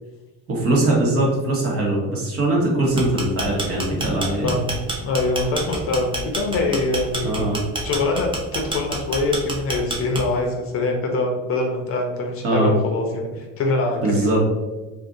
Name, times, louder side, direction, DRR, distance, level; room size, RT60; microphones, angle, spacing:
voice 1, 0.5-4.5 7.2-7.6 12.4-12.7 14.0-14.4, right 2 dB, 45° right, -2 dB, 1.1 m, -21 dB
sound 1, 2.8-10.5, right 2 dB, 15° right, 0.5 m, -28 dB
voice 2, 5.0-7.3 7.8-14.3, left 2 dB, 40° left, 2 dB, 0.6 m, -24 dB
2.5 x 2.5 x 3.7 m, 1.1 s
cardioid pair, 115°, 33 cm